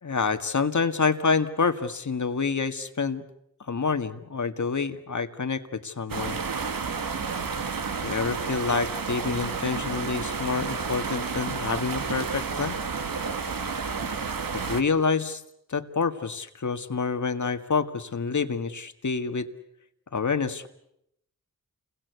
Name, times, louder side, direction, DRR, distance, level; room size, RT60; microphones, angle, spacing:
voice 1, 0.0-3.2 3.7-6.4 8.0-12.8 14.5-15.4 15.7-19.5 20.1-20.7, left 5 dB, 55° left, 8 dB, 1.9 m, -27 dB
sound 1, 6.1-14.8, right 5 dB, 70° right, 1.9 m, -31 dB
29.5 x 22.0 x 8.2 m, 0.80 s
wide cardioid pair, 80°, 35 cm